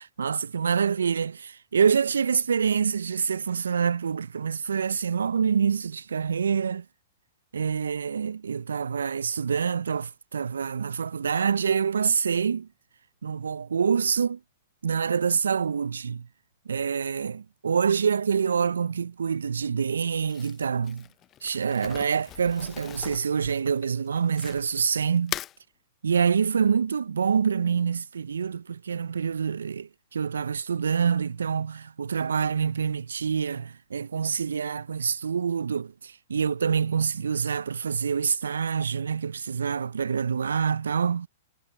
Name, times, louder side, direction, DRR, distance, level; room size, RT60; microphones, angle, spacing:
voice 1, 0.0-6.9 7.5-12.7 13.2-14.4 14.8-16.3 16.7-21.1 21.4-25.4 26.0-41.3, right 6 dB, 80° right, 0.3 m, -26 dB
Crumpling crinkling, 20.2-24.8 25.2-25.6, left 12 dB, 30° left, 0.5 m, -39 dB
hypercardioid pair, 115°, 0 cm